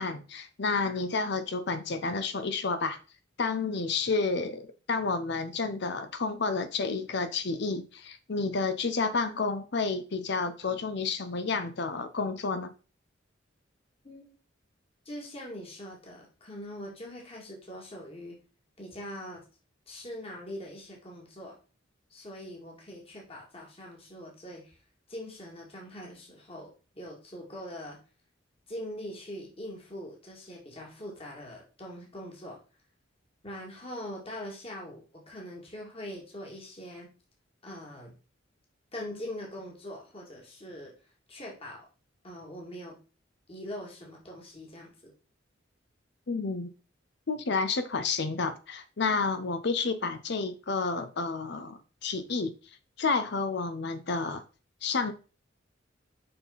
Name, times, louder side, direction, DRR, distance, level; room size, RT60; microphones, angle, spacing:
voice 1, 0.0-3.0 3.4-4.6 4.9-12.7 46.3-46.7 47.3-52.5 53.0-54.4 54.8-55.1, left 4 dB, 60° left, 10 dB, 0.7 m, -30 dB
voice 2, 15.1-18.4 18.8-19.4 19.9-21.6 22.1-24.8 25.1-28.0 28.7-32.6 33.4-37.1 37.6-38.1 38.9-41.9 42.2-43.0 43.5-45.1, left 1 dB, 30° left, -2 dB, 2.3 m, -42 dB
6.7 x 5.7 x 4.0 m, 0.34 s
head